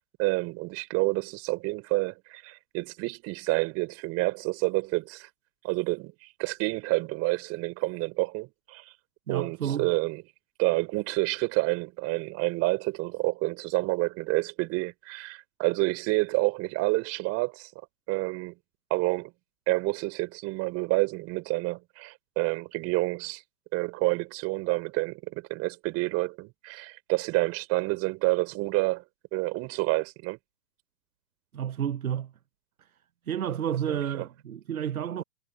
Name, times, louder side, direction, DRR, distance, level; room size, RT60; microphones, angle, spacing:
voice 1, 0.2-5.3 5.6-8.8 9.3-10.2 10.6-17.7 18.1-18.6 18.9-19.3 19.7-23.4 23.7-29.0 29.3-30.4 33.9-34.3, right 23 dB, 35° right, 5.5 m, -28 dB
voice 2, 9.3-9.9 31.5-32.3 33.3-35.2, right 9 dB, 70° right, 1.1 m, -30 dB
figure-of-eight pair, 115°, 44 cm